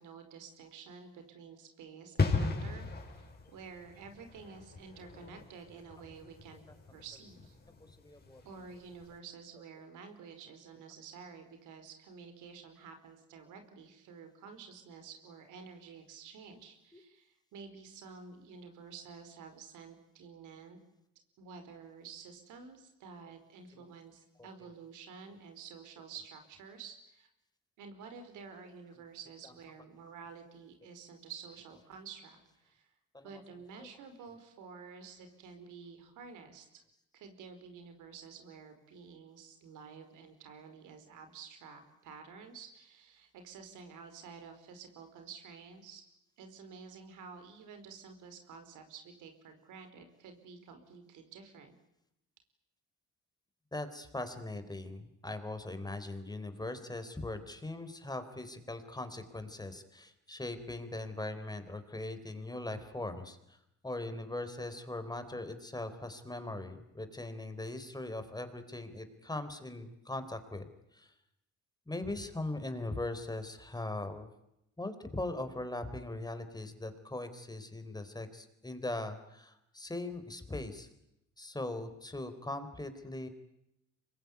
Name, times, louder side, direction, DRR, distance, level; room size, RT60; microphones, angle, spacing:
voice 1, 0.0-6.6 6.9-7.6 8.4-20.8 21.4-27.3 27.8-32.9 33.2-36.8 37.1-46.0 46.4-51.7, right 5 dB, 90° right, 7 dB, 4.7 m, -50 dB
sound 1, 2.2-8.7 8.9-9.1, left 4 dB, 30° left, 5.6 m, -36 dB
voice 2, 7.8-8.4 16.9-17.0 23.7-23.8 24.4-24.7 33.1-33.4 33.8-33.9 53.7-63.6 63.8-71.1 71.9-74.3 74.8-80.9 81.4-83.3, left 2 dB, 15° left, 9 dB, 3.8 m, -40 dB
25.5 x 22.0 x 9.5 m, 0.84 s
cardioid pair, 90°, 30 cm